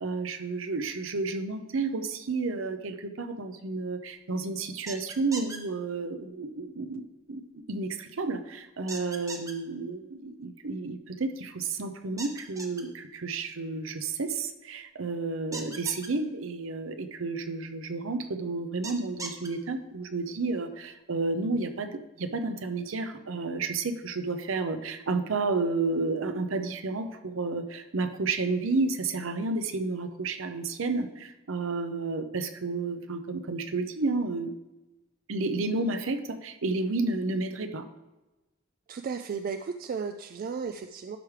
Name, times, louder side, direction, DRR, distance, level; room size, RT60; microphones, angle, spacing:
voice 1, 0.0-7.0 7.3-34.5 35.3-37.8, right 3 dB, 70° right, 8 dB, 0.7 m, -31 dB
sound 1, 4.9-5.6 8.9-9.5 12.2-12.8 15.5-16.1 18.8-19.5, right 3 dB, 15° right, 0.8 m, -38 dB
voice 2, 38.9-41.2, right 5 dB, 45° right, 7 dB, 0.3 m, -34 dB
12.0 x 4.9 x 3.3 m, 1.0 s
head